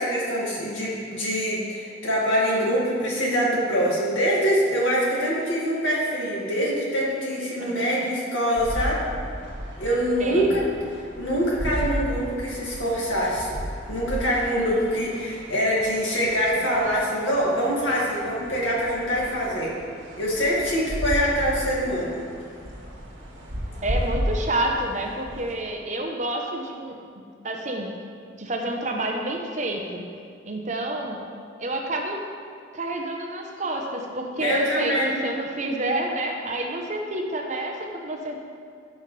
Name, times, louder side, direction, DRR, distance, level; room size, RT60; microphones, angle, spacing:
voice 1, 0.0-9.0 9.8-10.6 11.2-13.6 13.9-19.7 20.2-22.2 34.4-35.2, equal, 75° left, -5 dB, 2.1 m, -24 dB
voice 2, 7.7-8.0 10.2-10.5 23.8-26.9 27.4-27.9 28.4-30.0 30.5-31.2 31.6-32.2 32.7-35.0 35.2-38.4, right 1 dB, 35° right, 1 dB, 0.8 m, -29 dB
sound 1, 8.6-25.5, equal, 70° right, 1.7 m, -34 dB
14.5 x 5.3 x 3.3 m, 2.2 s
head